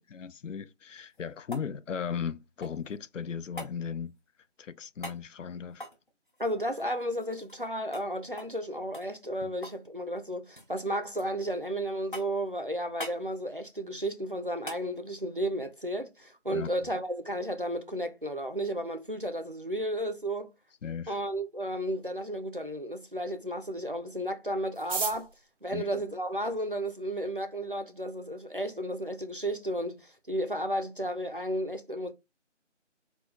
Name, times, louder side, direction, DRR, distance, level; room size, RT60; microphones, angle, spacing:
voice 1, 0.0-4.1 4.6-5.8 9.4-9.5 16.5-16.7 20.8-21.2 25.7-26.0, left 7 dB, 85° left, 0.5 m, -37 dB
sound 1, 0.9-3.0 3.6-3.8 5.0-5.2 5.7-7.7 7.9-8.1 8.4-8.6 8.9-9.9 10.1-10.7 11.2-11.7 12.1-12.5 13.0-13.2 14.6-14.9 17.2-17.3, left 1 dB, 45° left, 0.8 m, -44 dB
voice 2, 6.4-20.5 21.1-25.3 25.6-32.1, right 1 dB, 45° right, 0.4 m, -33 dB
sound 2, 24.7-27.0 27.8-27.9 28.1-28.2 28.5-28.9 29.3-29.4 29.5-30.0 30.3-30.5 30.8-31.1, right 5 dB, 85° right, 0.6 m, -37 dB
3.4 x 2.6 x 3.1 m
figure-of-eight pair, 180°, 37 cm